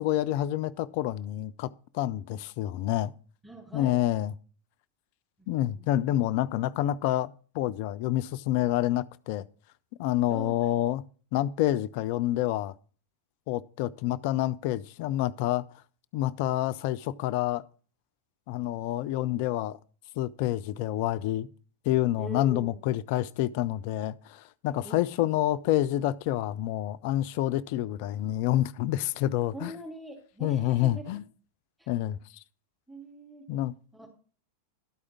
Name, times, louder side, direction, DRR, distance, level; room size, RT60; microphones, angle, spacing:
voice 1, 0.0-3.1 3.7-4.3 5.5-9.4 10.0-11.0 11.3-12.7 13.5-15.6 16.1-17.6 18.5-19.8 20.2-21.5 21.9-29.7 30.4-31.2 31.9-32.2 33.5-33.7, left 13 dB, 45° left, 0.4 m, -28 dB
voice 2, 3.4-4.0 5.4-5.9 10.3-10.8 22.2-22.8 24.8-25.3 29.5-31.1 31.8-31.9 32.9-33.4 33.9-34.2, right 2 dB, 5° right, 2.8 m, -43 dB
12.5 x 4.9 x 7.1 m
figure-of-eight pair, 90°, 0 cm